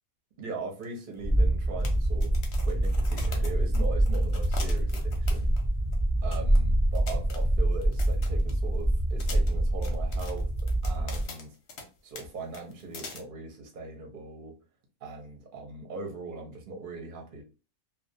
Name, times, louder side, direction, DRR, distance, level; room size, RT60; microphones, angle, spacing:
voice 1, 0.4-5.5 6.2-10.5 10.8-11.6 12.0-14.5 15.0-17.4, right 3 dB, 50° right, 2 dB, 0.7 m, -40 dB
sound 1, 0.8-0.9 1.1-1.2 1.8-5.7 5.9-6.0 6.3-6.6 6.9-8.8 9.2-11.9 12.2-12.3 12.5-13.2, left 4 dB, 60° left, 0.8 m, -43 dB
sound 2, 1.2-11.2, right 1 dB, 20° right, 0.7 m, -26 dB
2.3 x 2.1 x 2.6 m, 0.33 s
omnidirectional pair, 1.5 m